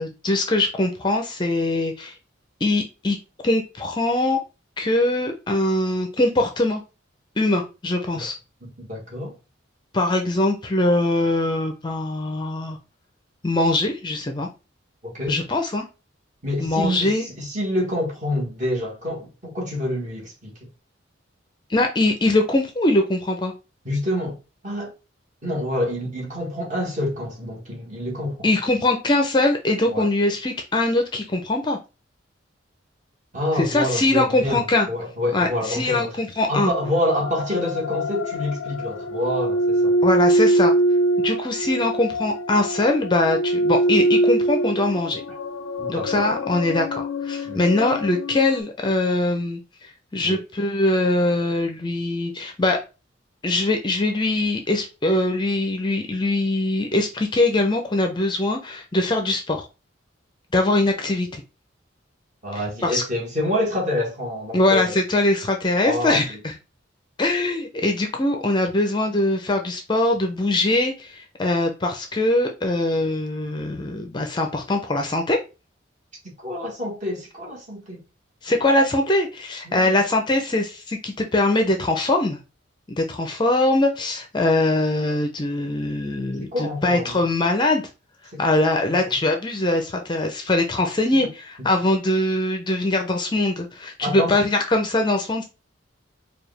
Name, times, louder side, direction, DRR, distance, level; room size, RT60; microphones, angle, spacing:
voice 1, 0.0-2.1 2.6-3.2 3.4-4.4 4.8-6.8 7.4-8.3 9.9-12.8 13.4-14.5 15.3-15.8 16.6-17.2 21.7-23.5 28.4-31.8 33.6-34.9 35.3-36.7 40.0-40.7 41.2-45.2 45.9-52.8 53.4-59.7 60.5-61.4 62.8-63.0 64.5-66.5 67.2-75.4 78.4-82.4 83.0-87.8 88.4-95.4, left 2 dB, 25° left, 0.5 m, -22 dB
voice 2, 8.6-9.3 15.0-15.4 16.4-20.7 23.8-24.4 24.6-24.9 25.4-28.5 29.9-30.1 33.3-36.2 36.5-40.0 45.8-46.3 47.4-47.7 50.2-50.4 62.4-64.9 65.8-66.4 76.4-78.0 79.6-79.9 86.4-87.2 88.3-88.4 88.8-89.0 94.0-94.4, left 1 dB, 40° right, 1.4 m, -27 dB
sound 1, 36.7-48.6, right 1 dB, 85° left, 0.4 m, -23 dB
4.7 x 2.3 x 3.2 m
head